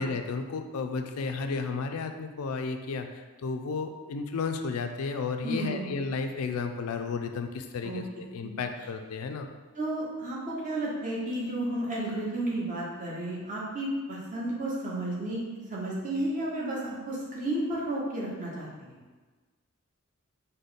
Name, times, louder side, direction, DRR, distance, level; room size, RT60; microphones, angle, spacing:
voice 1, 0.0-9.5, left 4 dB, 85° left, 6 dB, 0.4 m, -33 dB
voice 2, 5.4-5.9 7.8-8.0 8.4-8.5 9.8-19.0, right 1 dB, 35° right, -5 dB, 0.9 m, -32 dB
4.9 x 2.1 x 4.0 m, 1.3 s
head